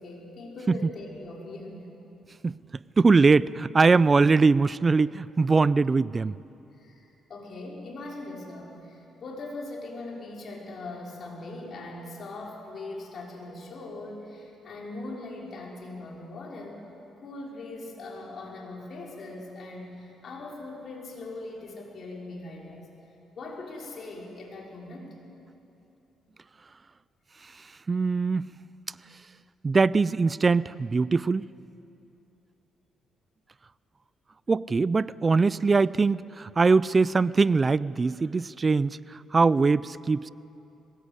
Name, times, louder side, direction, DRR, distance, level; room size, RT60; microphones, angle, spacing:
voice 1, 0.0-1.9 6.8-16.8 17.2-22.9 23.3-25.2, left 2 dB, 55° left, -2 dB, 5.5 m, -40 dB
voice 2, 3.0-6.4 27.9-28.5 29.6-31.5 34.5-40.3, right 4 dB, 30° right, 19 dB, 0.4 m, -22 dB
22.0 x 19.5 x 8.3 m, 2.9 s
cardioid pair, 90°, 0 cm